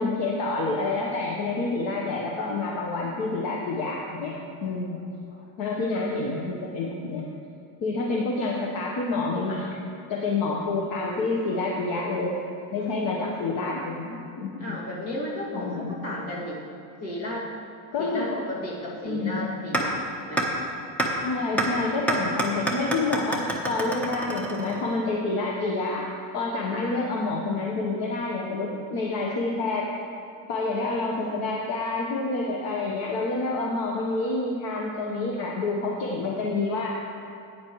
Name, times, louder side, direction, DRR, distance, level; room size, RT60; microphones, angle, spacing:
voice 1, 0.0-4.3 4.6-5.0 5.6-7.3 7.8-9.8 10.1-14.8 15.5-15.9 17.9-18.4 19.0-19.5 21.2-26.1 26.3-29.9 30.5-36.9, left 3 dB, 55° left, -2 dB, 1.2 m, -28 dB
voice 2, 14.6-16.6 17.0-17.5 18.0-20.4, left 1 dB, 35° left, -5 dB, 2.3 m, -34 dB
sound 1, 19.7-19.8 20.4-20.5 21.0-21.1 21.6-21.7 22.1-25.0, right 2 dB, 5° left, 1.0 m, -26 dB
15.0 x 9.2 x 3.1 m, 2.6 s
cardioid pair, 160°, 42 cm